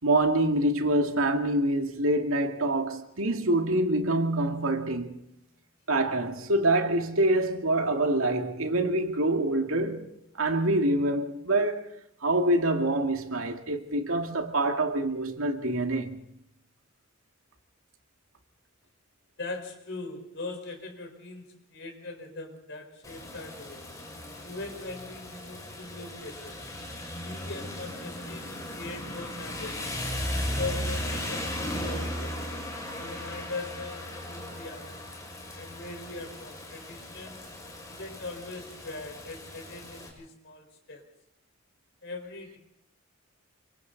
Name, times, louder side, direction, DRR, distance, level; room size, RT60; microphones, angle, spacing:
voice 1, 0.0-5.2 5.9-10.1 10.3-11.9 12.2-16.2, right 1 dB, 90° right, 2.3 m, -26 dB
voice 2, 19.4-23.9 24.4-26.6 27.2-29.9 30.4-32.4 33.0-35.0 35.5-37.4 37.9-41.0 42.0-42.6, left 3 dB, 60° left, 4.9 m, -41 dB
Rain, 23.0-40.1, left 1 dB, 15° left, 6.0 m, -37 dB
28.5 x 25.0 x 4.1 m
head